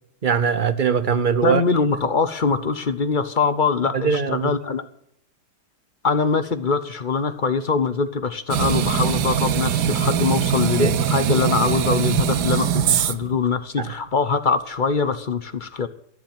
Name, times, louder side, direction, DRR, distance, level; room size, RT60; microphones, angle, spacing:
voice 1, 0.2-1.6 3.9-4.5 10.8-11.0 13.8-13.9, right 6 dB, 45° right, 0.7 m, -21 dB
voice 2, 1.4-4.8 6.0-15.9, left 5 dB, 40° left, 0.7 m, -23 dB
sound 1, 8.5-13.4, right 9 dB, 75° right, 1.4 m, -22 dB
13.5 x 7.5 x 9.1 m
omnidirectional pair, 1.8 m